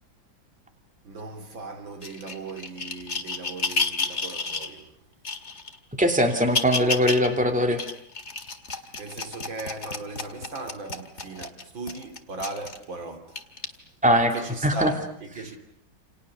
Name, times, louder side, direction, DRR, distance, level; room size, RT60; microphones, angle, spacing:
voice 1, 1.0-5.0 8.8-13.8 14.3-15.6, right 3 dB, 75° right, 3.6 m, -38 dB
sound 1, 2.0-4.7 5.2-5.8 6.3-7.3 7.7-12.8 13.4-13.6 14.4-14.5, left 4 dB, 35° left, 2.2 m, -31 dB
voice 2, 6.0-7.8 14.0-14.3 14.6-14.9, equal, 5° right, 3.1 m, -21 dB
29.0 x 29.0 x 6.7 m
omnidirectional pair, 2.1 m